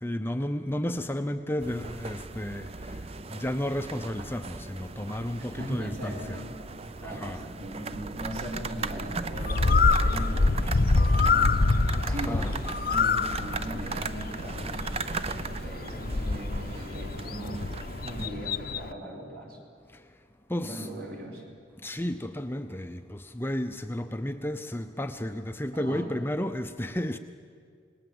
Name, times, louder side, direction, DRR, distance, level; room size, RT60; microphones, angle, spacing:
voice 1, 0.0-3.0 3.3-6.2 7.0-7.4 12.0-12.5 19.9-20.0 20.5-20.9 21.8-27.2, left 1 dB, 10° left, 0.6 m, -32 dB
sound 1, 1.6-18.3, right 3 dB, 35° right, 0.6 m, -37 dB
voice 2, 5.4-6.5 6.9-11.6 12.1-12.5 12.8-15.0 15.4-17.6 18.0-19.6 20.6-21.5 25.7-26.1, right 1 dB, 55° right, 4.9 m, -39 dB
Bird, 9.3-18.9, left 3 dB, 55° left, 0.7 m, -26 dB
27.5 x 20.0 x 7.9 m
head